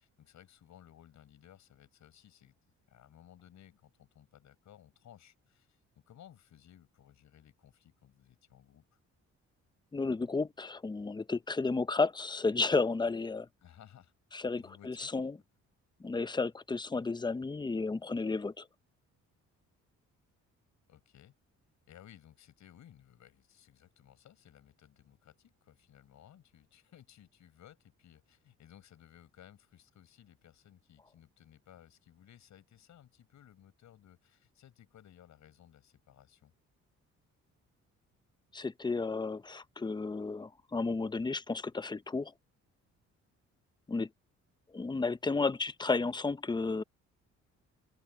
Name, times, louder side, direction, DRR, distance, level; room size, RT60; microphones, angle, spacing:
voice 1, 0.0-2.5 2.9-9.0 13.6-14.1 14.6-15.1 20.9-21.3 21.9-36.5, left 10 dB, 70° left, 6.4 m, -59 dB
voice 2, 9.9-13.5 14.3-15.3 16.0-18.7 38.5-42.3 43.9-44.1 44.7-46.8, left 3 dB, 15° left, 0.7 m, -32 dB
open air
cardioid pair, 90°, 30 cm